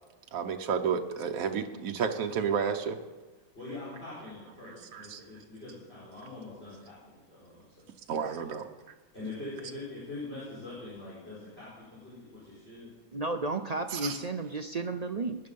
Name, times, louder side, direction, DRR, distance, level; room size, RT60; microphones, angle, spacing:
voice 1, 0.3-3.0 4.6-5.2 8.1-8.7 13.9-14.2, right 6 dB, 75° right, 4 dB, 1.2 m, -31 dB
voice 2, 3.5-7.6 8.4-8.6 9.1-12.9, left 2 dB, 45° left, -9 dB, 5.3 m, -43 dB
voice 3, 13.1-15.4, right 3 dB, 50° right, 7 dB, 0.5 m, -33 dB
19.0 x 10.5 x 5.3 m, 1.2 s
omnidirectional pair, 1.5 m